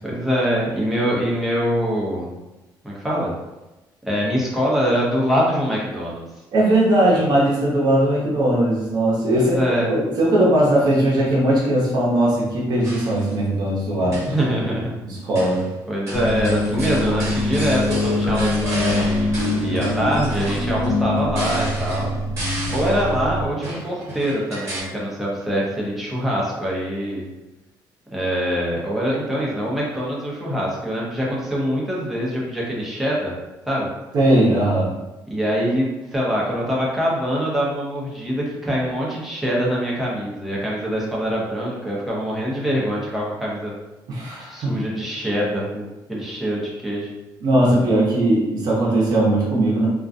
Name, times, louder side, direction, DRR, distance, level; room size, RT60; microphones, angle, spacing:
voice 1, 0.0-2.3 2.8-3.3 4.1-6.2 9.4-9.9 14.0-14.9 15.9-22.1 22.7-27.3 28.1-33.3 33.7-33.9 35.3-43.7 44.4-47.1, equal, 5° right, -5 dB, 0.7 m, -24 dB
voice 2, 6.5-9.6 9.9-14.2 15.0-15.6 34.1-34.9 44.1-44.7 47.4-49.9, right 1 dB, 55° right, -3 dB, 0.8 m, -19 dB
sound 1, 12.8-13.3 14.0-14.5 15.4-15.7 16.1-23.1 23.6-24.8, right 1 dB, 40° right, 1.1 m, -33 dB
sound 2, 16.1-23.5, left 2 dB, 70° left, 0.6 m, -24 dB
2.4 x 2.2 x 2.5 m, 1.0 s
cardioid pair, 140°, 8 cm